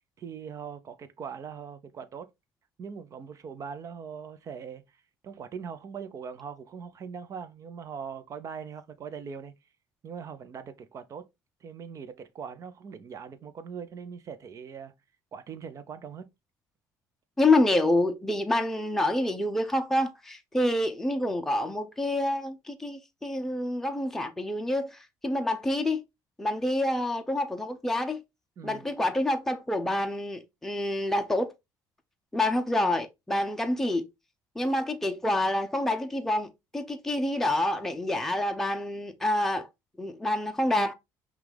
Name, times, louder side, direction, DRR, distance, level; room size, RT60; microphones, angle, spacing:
voice 1, 0.2-2.3 2.8-4.8 5.2-9.5 10.0-11.3 11.6-14.9 15.3-16.3 28.6-28.9, right 6 dB, 45° right, 0.7 m, -41 dB
voice 2, 17.4-26.0 26.4-28.2 28.6-31.5 32.3-34.1 34.6-39.7 40.0-40.9, left 1 dB, 5° left, 0.6 m, -27 dB
5.8 x 2.4 x 3.3 m
cardioid pair, 115°, 8 cm